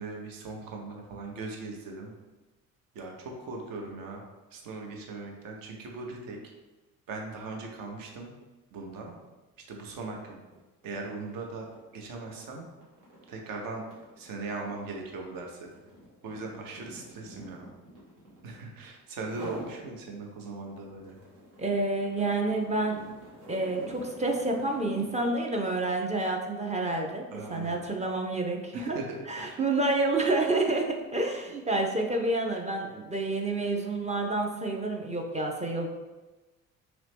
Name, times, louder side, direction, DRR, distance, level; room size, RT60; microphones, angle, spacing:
voice 1, 0.0-2.1 2.9-4.2 4.5-6.4 7.1-8.3 8.7-9.1 9.7-10.4 10.8-11.7 11.9-12.7 13.3-13.8 14.2-15.7 16.2-17.7 18.4-21.2 27.3-27.8 28.7-29.6, right 3 dB, 55° right, 1 dB, 0.9 m, -39 dB
sound 1, 9.8-10.0 10.3-18.7 19.2-19.8 20.2-25.4, equal, 85° right, 1.0 m, -46 dB
voice 2, 21.6-23.0 23.5-27.2 27.5-29.0 29.3-35.9, right 2 dB, 15° right, 1 dB, 0.5 m, -29 dB
3.0 x 2.9 x 3.3 m, 1.2 s
figure-of-eight pair, 50°, 41 cm